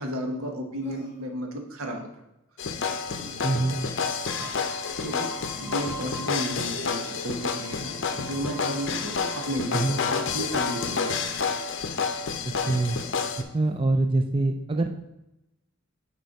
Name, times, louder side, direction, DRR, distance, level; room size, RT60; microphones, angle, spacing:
voice 1, 0.0-2.1 4.4-5.3 5.6-11.2, right 1 dB, 80° right, 3 dB, 1.2 m, -33 dB
Human voice, 0.8-1.4 3.1-3.4 4.9-5.3 6.9-7.5 8.8-9.1 10.0-10.3 11.3-12.0 13.6-13.8, equal, 10° left, 2.0 m, -51 dB
sound 1, 2.6-13.4, left 5 dB, 60° left, 0.6 m, -29 dB
voice 2, 3.4-3.8 9.7-10.0 12.7-13.0 13.5-14.9, right 2 dB, 25° right, 6 dB, 0.4 m, -24 dB
sound 2, 4.3-6.8 7.1-11.7 12.5-13.0, right 2 dB, 5° right, 1.5 m, -45 dB
6.6 x 4.5 x 4.6 m, 0.90 s
head